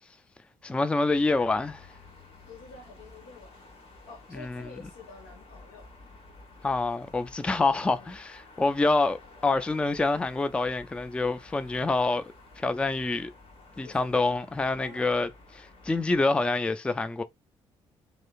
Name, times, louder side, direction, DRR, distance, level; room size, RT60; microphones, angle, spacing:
voice 1, 0.6-1.9 4.3-4.7 6.6-12.2 12.6-13.3 13.8-17.2, left 3 dB, 10° left, 0.3 m, -27 dB
sound 1, 1.1-16.2, left 3 dB, 45° left, 1.1 m, -52 dB
voice 2, 2.5-3.6 4.1-5.9 7.8-8.1 13.8-14.4 14.8-15.1, left 4 dB, 70° left, 1.0 m, -48 dB
2.9 x 2.0 x 2.3 m
hypercardioid pair, 50°, 13 cm